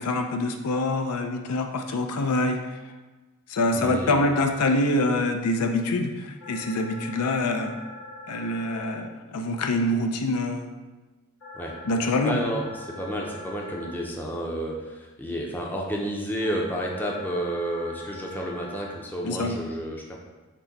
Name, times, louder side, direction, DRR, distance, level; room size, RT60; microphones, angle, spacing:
voice 1, 0.0-2.6 3.5-7.7 8.3-10.7 11.9-12.4 19.2-19.5, left 2 dB, 85° left, 5 dB, 0.5 m, -25 dB
voice 2, 3.7-4.3 11.5-11.8 12.2-20.2, equal, 10° left, -1 dB, 0.5 m, -31 dB
sound 1, 6.4-8.9 11.4-13.9 16.4-18.9, left 1 dB, 55° left, 1.4 m, -42 dB
6.0 x 2.2 x 4.0 m, 1.2 s
head